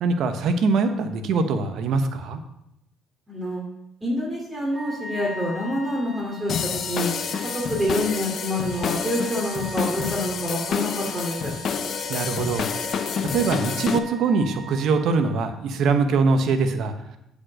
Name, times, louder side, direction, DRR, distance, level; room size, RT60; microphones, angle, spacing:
voice 1, 0.0-2.4 12.1-12.7 13.3-16.9, right 4 dB, 65° right, 8 dB, 1.0 m, -22 dB
voice 2, 3.3-3.6 4.0-7.1 7.5-11.5, left 1 dB, 25° right, -3 dB, 2.6 m, -27 dB
Wind instrument woodwind instrument, 4.7-15.5, right 4 dB, 10° left, 1.7 m, -40 dB
sound 1, 6.5-14.0, left 7 dB, 55° left, 0.7 m, -28 dB
8.5 x 5.1 x 6.3 m, 0.83 s
supercardioid pair, 65°, 0 cm